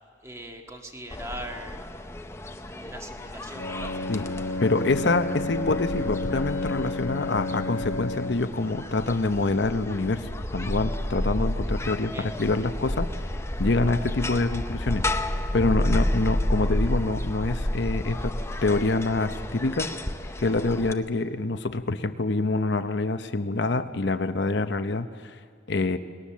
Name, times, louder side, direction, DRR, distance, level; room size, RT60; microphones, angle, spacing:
voice 1, 0.2-2.0 2.7-3.9 12.1-12.3, right 1 dB, 15° right, 3 dB, 1.8 m, -40 dB
sound 1, 1.1-20.9, left 1 dB, 15° left, 0.7 m, -31 dB
Bowed string instrument, 3.5-8.6, left 2 dB, 90° left, 1.4 m, -31 dB
voice 2, 4.6-13.1 13.6-18.3 18.6-19.9 20.4-25.4 25.7-26.0, left 3 dB, 60° left, 9 dB, 0.8 m, -26 dB
sound 2, 9.9-15.5, equal, 55° right, 2.0 m, -43 dB
28.0 x 19.5 x 7.3 m, 2.2 s
head